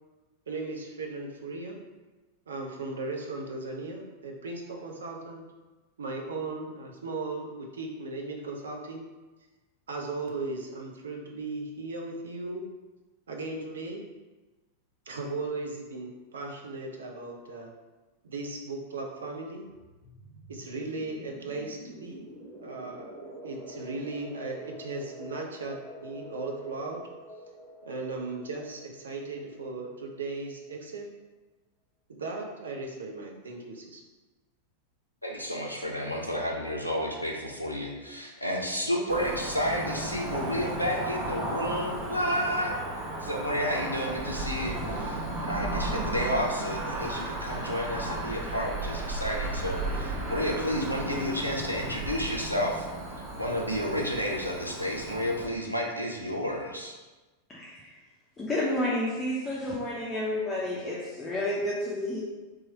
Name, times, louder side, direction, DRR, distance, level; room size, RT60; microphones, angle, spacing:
voice 1, 0.5-1.8 2.5-5.5 6.0-9.1 9.9-12.7 13.3-14.0 15.1-17.7 18.2-19.6 20.5-22.2 22.6-27.0 27.9-31.1 32.1-34.0, right 3 dB, 65° right, 0 dB, 0.6 m, -37 dB
sound 1, 19.7-30.2, right 1 dB, 15° right, 1.2 m, -47 dB
voice 2, 35.2-42.8 43.1-52.9 53.4-57.0, equal, 90° left, -1 dB, 0.5 m, -31 dB
Cricket / Motor vehicle (road), 39.1-55.5, right 2 dB, 35° right, 0.9 m, -34 dB
voice 3, 57.5-57.9 58.4-62.2, left 1 dB, 15° left, -6 dB, 0.6 m, -30 dB
3.1 x 2.3 x 4.0 m, 1.2 s
figure-of-eight pair, 90°, 0 cm